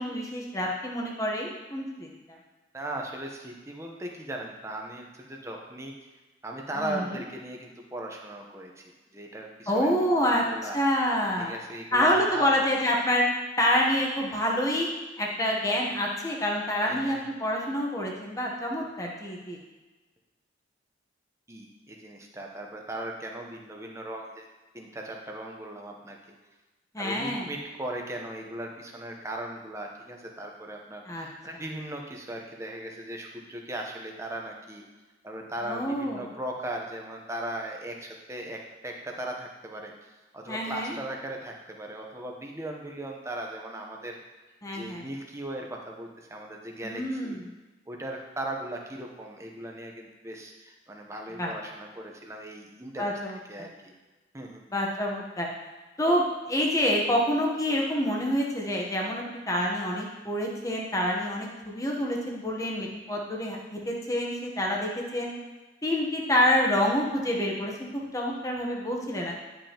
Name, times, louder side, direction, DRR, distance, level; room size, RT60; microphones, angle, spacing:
voice 1, 0.0-2.4 6.8-7.2 9.7-10.4 10.7-11.5 11.9-13.2 13.6-14.9 15.2-19.6 26.9-27.5 31.1-31.3 35.6-36.2 40.5-40.9 44.6-45.1 46.8-47.4 51.4-51.5 53.0-53.7 54.7-55.5 56.0-65.3 65.8-69.3, equal, 15° left, -1 dB, 0.9 m, -27 dB
voice 2, 2.7-5.9 6.4-9.9 10.2-10.8 11.4-12.5 16.8-17.2 21.5-24.5 24.7-26.2 27.0-34.8 35.2-44.2 44.7-47.4 47.9-53.9 54.3-54.6, right 1 dB, 15° right, 1 dB, 0.8 m, -38 dB
10.5 x 5.4 x 2.9 m, 1.2 s
head